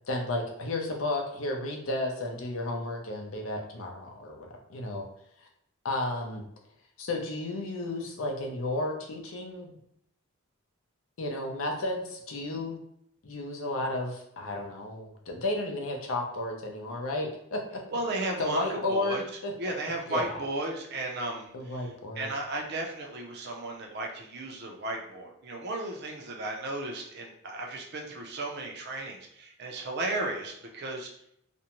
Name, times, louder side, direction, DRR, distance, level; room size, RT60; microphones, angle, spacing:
voice 1, 0.1-5.0 5.8-6.4 7.0-9.8 11.2-12.8 13.2-17.6 18.4-19.5 20.1-20.4 21.5-22.3, left 2 dB, 65° left, 1 dB, 0.5 m, -33 dB
voice 2, 17.9-19.2 19.6-21.9 22.2-31.1, right 2 dB, 50° right, 1 dB, 0.5 m, -34 dB
2.5 x 2.1 x 2.9 m, 0.73 s
head